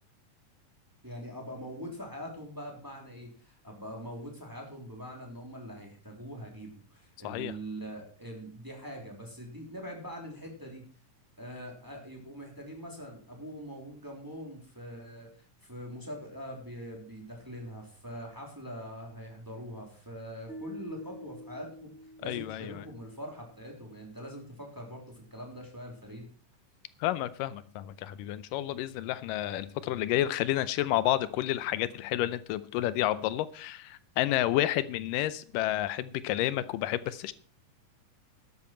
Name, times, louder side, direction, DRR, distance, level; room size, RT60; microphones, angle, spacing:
voice 1, 1.0-10.8 11.4-21.9 22.2-26.3, equal, 5° right, 0 dB, 2.7 m, -43 dB
sound 1, 20.5-23.7, equal, 45° left, 0.9 m, -48 dB
voice 2, 22.2-22.9 27.0-37.3, left 14 dB, 90° left, 15 dB, 2.3 m, -30 dB
12.5 x 11.0 x 4.4 m, 0.43 s
omnidirectional pair, 3.7 m